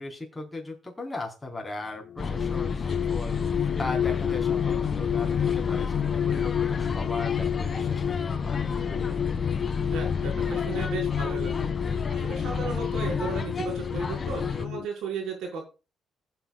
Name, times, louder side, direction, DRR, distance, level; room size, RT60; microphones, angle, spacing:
voice 1, 0.0-8.7, left 2 dB, 15° left, 1 dB, 4.3 m, -38 dB
sound 1, 2.1-14.9, left 9 dB, 60° left, 0.5 m, -30 dB
sound 2, 2.2-14.7, left 5 dB, 40° left, 1.7 m, -31 dB
voice 2, 9.8-15.6, right 5 dB, 85° right, 1 dB, 5.4 m, -35 dB
20.5 x 8.0 x 2.4 m, 0.32 s
cardioid pair, 90°, 0 cm